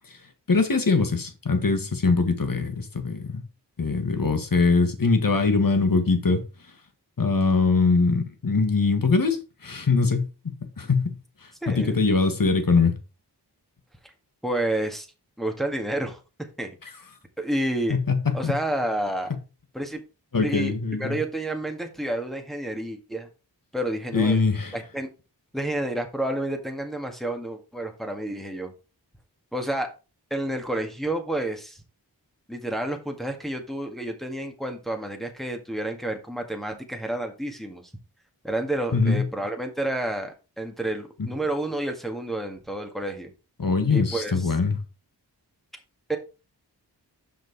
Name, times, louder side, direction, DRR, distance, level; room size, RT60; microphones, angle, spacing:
voice 1, 0.5-3.4 3.8-6.4 7.2-11.1 11.7-12.9 17.9-18.6 20.3-21.2 24.1-24.7 38.9-39.3 41.2-41.3 43.6-44.8, left 4 dB, 55° left, 1.7 m, -22 dB
voice 2, 11.6-12.0 14.4-15.1 15.4-16.7 17.4-18.0 18.3-19.3 19.7-20.0 20.4-20.7 21.0-23.3 23.7-24.4 24.7-25.1 25.5-28.7 29.5-29.9 30.3-31.8 32.5-37.8 38.4-43.3 43.9-44.5 46.1-46.2, right 1 dB, ahead, 1.7 m, -30 dB
6.1 x 5.3 x 4.6 m
cardioid pair, 45°, 41 cm